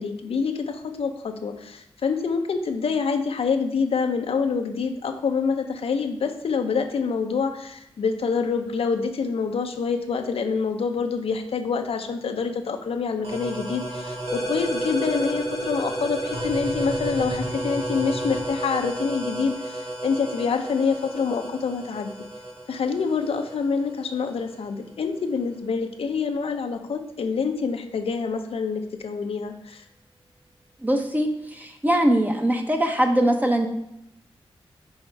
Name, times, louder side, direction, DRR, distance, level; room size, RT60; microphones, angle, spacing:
voice 1, 0.0-22.1 22.7-29.8, left 5 dB, 75° left, 5 dB, 0.7 m, -26 dB
sound 1, 13.2-24.6, right 1 dB, 90° right, 1.7 m, -31 dB
voice 2, 30.8-33.7, right 1 dB, 15° right, 4 dB, 0.9 m, -22 dB
5.6 x 4.3 x 4.6 m, 0.79 s
cardioid pair, 70°, 10 cm